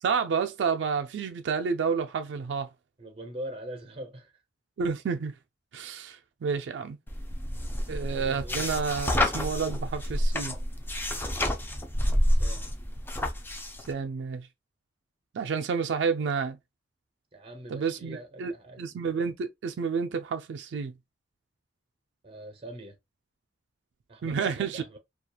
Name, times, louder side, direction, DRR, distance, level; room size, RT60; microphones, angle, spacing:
voice 1, 0.0-2.7 4.8-5.3 5.7-7.0 7.9-10.5 13.9-14.5 15.3-16.6 17.7-18.5 18.8-20.9 24.2-24.8, right 5 dB, 75° right, 0.3 m, -30 dB
voice 2, 3.0-4.3 8.1-8.8 12.4-12.7 17.3-18.8 22.2-23.0 24.1-25.0, right 1 dB, 30° right, 0.7 m, -42 dB
sound 1, 7.1-13.9, left 1 dB, 10° left, 0.4 m, -28 dB
2.8 x 2.3 x 2.2 m
head